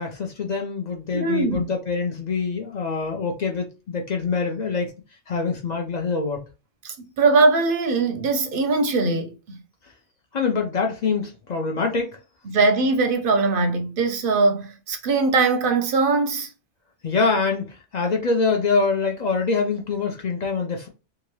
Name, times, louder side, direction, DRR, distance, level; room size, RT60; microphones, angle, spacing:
voice 1, 0.0-4.9 5.3-6.4 10.3-12.2 17.0-20.9, left 4 dB, 55° left, 0.5 m, -25 dB
voice 2, 1.1-1.6 6.8-9.6 12.5-16.5, right 3 dB, 60° right, 0.6 m, -21 dB
2.8 x 2.4 x 3.1 m
omnidirectional pair, 1.2 m